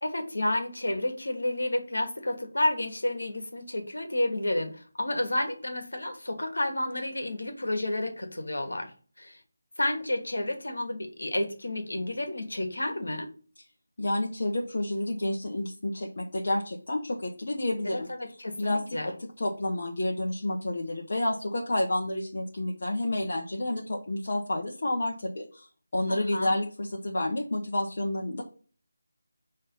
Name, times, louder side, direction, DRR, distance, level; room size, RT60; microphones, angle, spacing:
voice 1, 0.0-8.9 9.2-9.4 9.8-13.3 17.8-19.1 26.1-26.5, left 1 dB, 65° left, 5 dB, 1.5 m, -30 dB
voice 2, 14.0-18.1 18.6-25.7 25.9-28.4, left 1 dB, 50° left, -2 dB, 0.9 m, -30 dB
5.6 x 3.2 x 5.4 m, 0.40 s
figure-of-eight pair, 160°, 0 cm